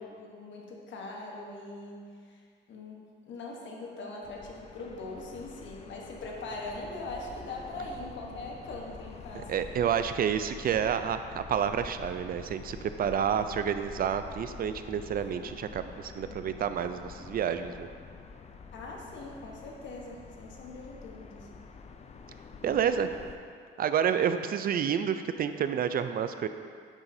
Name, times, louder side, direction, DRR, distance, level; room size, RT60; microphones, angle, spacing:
voice 1, 0.0-2.4 2.7-9.6 18.7-21.5 22.7-23.2, left 2 dB, 70° left, -1 dB, 1.1 m, -42 dB
sound 1, 4.2-23.4, left 5 dB, 35° left, 0.4 m, -47 dB
voice 2, 9.5-17.9 22.6-23.1 23.8-26.5, right 8 dB, 50° right, 10 dB, 0.4 m, -29 dB
8.7 x 5.7 x 2.7 m, 2.2 s
cardioid pair, 90°, 20 cm